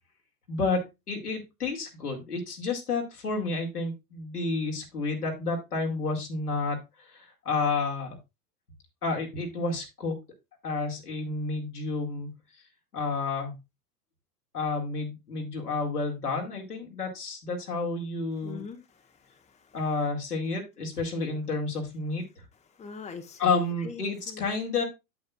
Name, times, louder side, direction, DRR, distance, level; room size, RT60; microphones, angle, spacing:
voice 1, 0.5-8.2 9.0-10.2 10.6-12.3 12.9-13.6 14.5-18.6 19.7-22.2 23.4-24.8, left 3 dB, 85° left, 2.3 m, -30 dB
voice 2, 18.4-19.8 22.8-24.5, left 5 dB, 15° left, 1.1 m, -43 dB
8.3 x 8.0 x 2.4 m
figure-of-eight pair, 90°, 45 cm